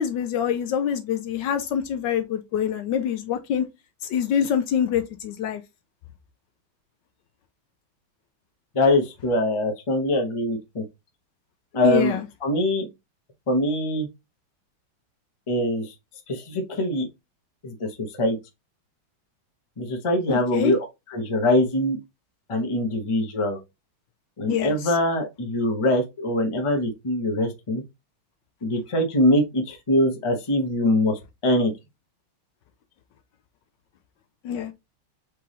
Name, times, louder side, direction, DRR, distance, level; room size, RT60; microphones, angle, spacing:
voice 1, 0.0-3.7 4.1-5.6 11.8-12.2 20.3-20.8 24.5-24.9 34.4-34.7, left 8 dB, 70° left, 1.2 m, -25 dB
voice 2, 8.7-10.8 11.7-12.9 13.5-14.1 15.5-15.9 16.3-17.1 17.6-18.4 19.8-20.8 21.1-22.0 22.5-23.6 24.4-27.8 28.6-31.7, left 1 dB, 25° left, 0.7 m, -23 dB
4.7 x 3.5 x 3.0 m
omnidirectional pair, 2.2 m